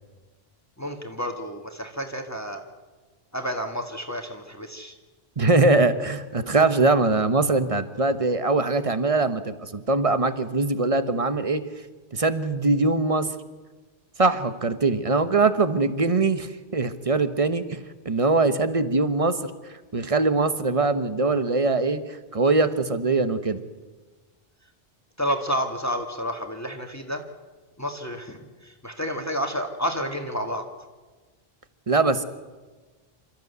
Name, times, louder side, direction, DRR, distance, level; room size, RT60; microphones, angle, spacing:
voice 1, 0.8-2.6 3.3-4.9 25.2-27.2 27.8-30.6, equal, 15° left, 4 dB, 1.8 m, -30 dB
voice 2, 5.4-11.6 12.1-13.3 14.2-19.4 19.9-22.0 22.3-23.6 31.9-32.2, right 3 dB, 35° right, 11 dB, 1.2 m, -22 dB
28.0 x 14.0 x 8.1 m, 1.3 s
omnidirectional pair, 1.1 m